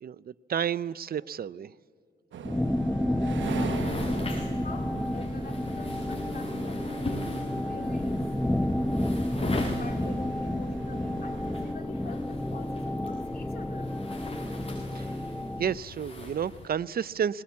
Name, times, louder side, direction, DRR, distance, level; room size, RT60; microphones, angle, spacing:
voice 1, 0.0-1.8 14.9-15.3 15.6-17.4, right 8 dB, 50° right, 0.5 m, -31 dB
sound 1, 2.3-11.7, right 8 dB, 75° right, 1.0 m, -42 dB
sound 2, 2.4-15.8, left 1 dB, 5° left, 0.6 m, -31 dB
voice 2, 3.4-7.3 7.6-8.2 9.7-13.9, left 4 dB, 50° left, 2.6 m, -46 dB
sound 3, 3.4-16.7, left 2 dB, 30° left, 6.2 m, -40 dB
21.5 x 19.5 x 8.5 m
cardioid pair, 75°, 20 cm